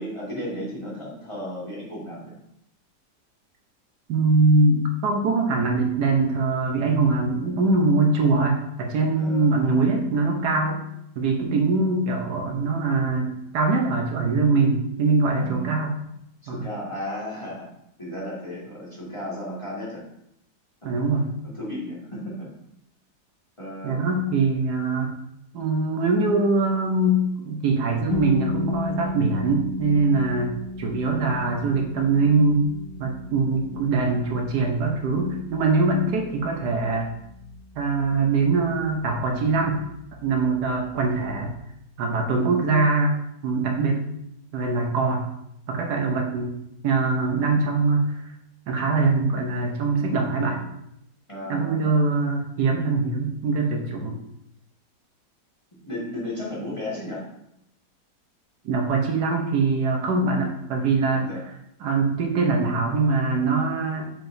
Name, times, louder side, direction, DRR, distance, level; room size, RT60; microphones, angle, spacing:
voice 1, 0.0-2.4 9.1-9.5 11.4-12.0 15.4-15.8 16.4-17.7 18.0-20.0 20.8-21.0 21.4-22.5 23.6-24.2 51.3-52.0 55.8-57.3 61.1-61.4, equal, 15° left, -7 dB, 1.8 m, -34 dB
voice 2, 4.1-10.8 11.2-15.9 16.5-16.6 20.8-21.3 23.8-25.1 25.5-32.6 33.0-37.1 37.8-39.8 40.2-41.5 42.0-43.2 43.4-44.0 44.5-45.3 45.7-46.6 46.8-48.2 48.7-50.6 51.5-54.2 58.6-61.3 61.8-64.1, right 3 dB, 70° right, 1 dB, 1.4 m, -22 dB
sound 1, 28.1-39.9, left 3 dB, 45° left, 2.4 m, -35 dB
6.8 x 5.9 x 2.6 m, 0.78 s
omnidirectional pair, 1.9 m